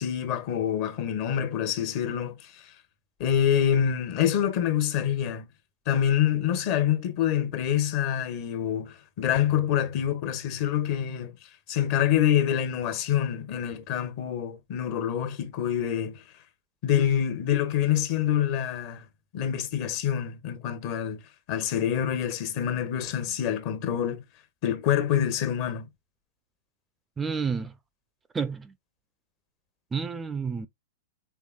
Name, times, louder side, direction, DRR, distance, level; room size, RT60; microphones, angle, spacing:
voice 1, 0.0-2.5 3.2-5.4 5.9-11.3 11.7-16.2 16.8-19.0 19.3-21.2 21.5-24.2 24.6-25.9, left 9 dB, 50° left, 1.0 m, -26 dB
voice 2, 27.2-27.7 28.3-28.7 29.9-30.7, right 5 dB, 15° right, 0.4 m, -30 dB
4.7 x 3.4 x 2.2 m
hypercardioid pair, 110°, 0 cm